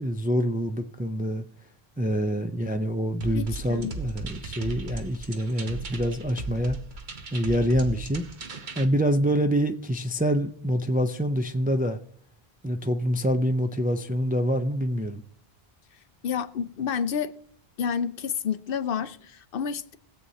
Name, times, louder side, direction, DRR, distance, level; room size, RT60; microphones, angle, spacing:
voice 1, 0.0-1.4 2.0-6.8 7.3-8.3 8.8-12.0 12.6-15.2, equal, 15° right, 0.3 m, -26 dB
sound 1, 3.2-8.8, right 3 dB, 50° right, 1.1 m, -37 dB
voice 2, 3.3-3.9 16.2-17.3 17.8-20.0, left 7 dB, 65° left, 0.7 m, -29 dB
21.0 x 7.7 x 2.8 m
omnidirectional pair, 1.0 m